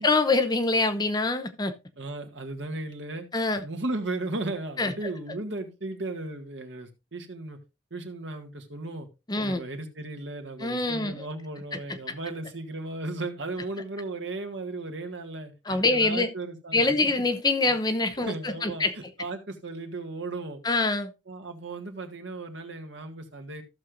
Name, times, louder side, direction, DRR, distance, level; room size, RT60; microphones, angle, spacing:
voice 1, 0.0-1.7 3.3-3.6 4.8-4.9 9.3-9.6 10.6-11.2 15.7-16.3 16.7-18.9 20.6-21.1, left 3 dB, 20° left, 0.7 m, -25 dB
voice 2, 2.0-3.3 3.6-7.6 7.9-9.1 9.4-17.0 17.7-17.8 18.2-20.6 21.3-23.6, right 2 dB, 75° right, 1.8 m, -36 dB
15.0 x 6.5 x 2.6 m
head